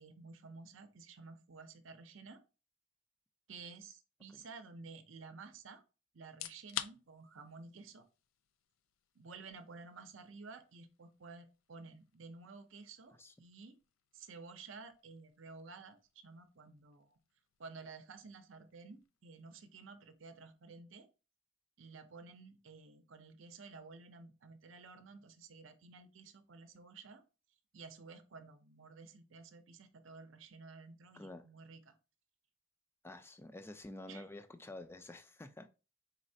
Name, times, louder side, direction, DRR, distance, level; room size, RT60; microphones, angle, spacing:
voice 1, 0.0-2.4 3.5-5.8 6.1-8.0 9.2-13.8 14.1-16.0 16.2-17.2 17.6-21.1 21.8-27.2 27.7-31.9 34.1-34.2, right 4 dB, 70° right, 0.6 m, -53 dB
sound 1, 6.2-21.1, left 12 dB, 85° left, 0.4 m, -53 dB
voice 2, 31.1-31.5 33.0-35.7, left 2 dB, 10° left, 0.4 m, -49 dB
4.2 x 4.1 x 2.6 m
head